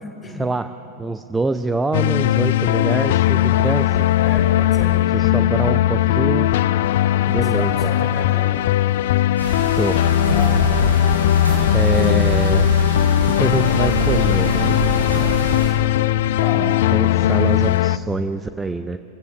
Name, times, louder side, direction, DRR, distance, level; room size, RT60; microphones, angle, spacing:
voice 1, 1.0-4.0 5.1-6.5 7.3-7.7 9.7-10.0 11.7-12.7 13.4-14.8 16.6-19.0, right 3 dB, 10° right, 10 dB, 0.6 m, -25 dB
sound 1, 1.9-18.0, left 12 dB, 55° left, 0.4 m, -18 dB
voice 2, 4.2-5.0 7.2-8.5 10.3-11.0 16.4-16.7, left 2 dB, 15° left, -1 dB, 6.3 m, -33 dB
sound 2, 9.4-15.7, right 1 dB, 85° right, 5.4 m, -25 dB
27.5 x 16.0 x 6.8 m, 2.9 s
figure-of-eight pair, 90°, 0 cm